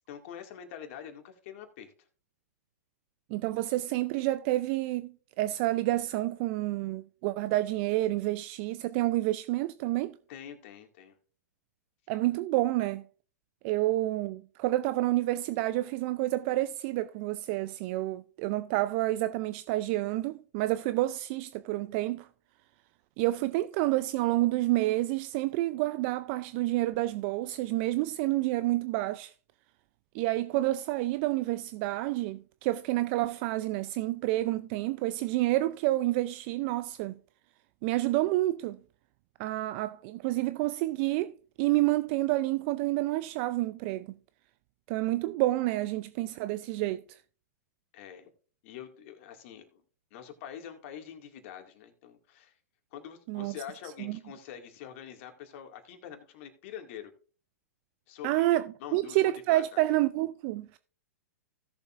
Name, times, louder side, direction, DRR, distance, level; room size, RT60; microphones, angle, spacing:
voice 1, 0.0-1.9 10.3-11.2 47.9-48.3 48.6-49.8 50.1-52.5 52.9-57.1 58.1-59.6, left 9 dB, 50° left, 2.1 m, -45 dB
voice 2, 3.3-10.2 12.1-13.0 13.6-22.3 23.2-29.3 30.1-37.1 37.8-38.8 39.4-44.2 44.9-47.2 53.3-53.5 54.0-54.2 58.2-60.8, right 17 dB, 45° right, 0.5 m, -29 dB
17.0 x 7.0 x 2.5 m
hypercardioid pair, 115°, 9 cm